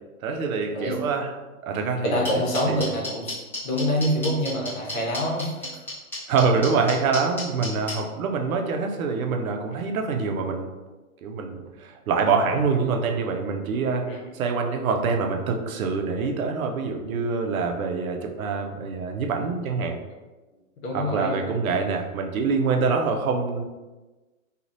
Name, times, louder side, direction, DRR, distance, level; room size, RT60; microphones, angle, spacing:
voice 1, 0.2-1.3 1.6-2.2 2.6-2.9 6.3-10.7 11.2-20.0 20.9-23.6, right 4 dB, 70° right, 3 dB, 0.7 m, -25 dB
voice 2, 2.0-3.3 3.6-5.7 14.1-14.2 20.8-21.3 22.8-23.0, equal, 65° left, -2 dB, 1.1 m, -26 dB
sound 1, 2.2-7.9, left 2 dB, 5° left, 0.5 m, -31 dB
3.1 x 2.4 x 2.6 m, 1.2 s
hypercardioid pair, 150°, 43 cm